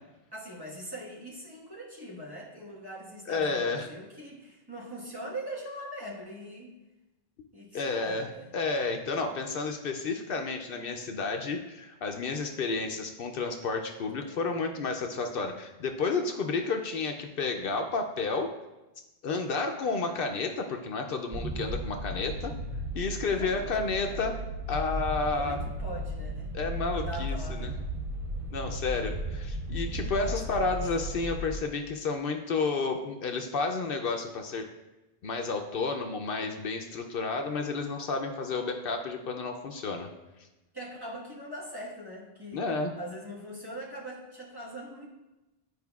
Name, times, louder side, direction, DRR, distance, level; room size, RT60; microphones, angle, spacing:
voice 1, 0.3-6.8 7.5-8.5 14.1-14.4 23.3-24.3 25.3-26.5 26.9-27.8 30.2-30.9 40.7-42.7 43.0-45.1, right 1 dB, 20° right, -5 dB, 1.4 m, -42 dB
voice 2, 3.3-3.9 7.7-8.3 8.5-18.5 19.2-22.5 22.9-24.4 24.7-25.6 26.5-27.7 28.5-34.7 35.2-40.1 42.5-42.9, left 4 dB, 70° left, 4 dB, 0.7 m, -31 dB
sound 1, 21.3-31.6, equal, 60° right, 0.3 m, -35 dB
11.0 x 4.9 x 2.3 m, 1.0 s
omnidirectional pair, 1.1 m